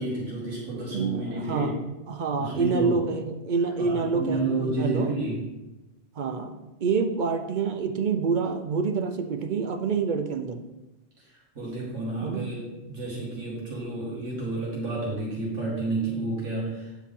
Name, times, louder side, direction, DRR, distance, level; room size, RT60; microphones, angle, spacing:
voice 1, 0.0-1.8 2.4-3.0 3.8-5.5 11.6-16.9, right 2 dB, 85° right, -6 dB, 2.3 m, -30 dB
voice 2, 0.9-1.8 2.1-5.2 6.2-10.6 12.2-12.5, right 5 dB, 50° right, 5 dB, 0.6 m, -27 dB
9.1 x 4.6 x 3.7 m, 1.0 s
omnidirectional pair, 1.3 m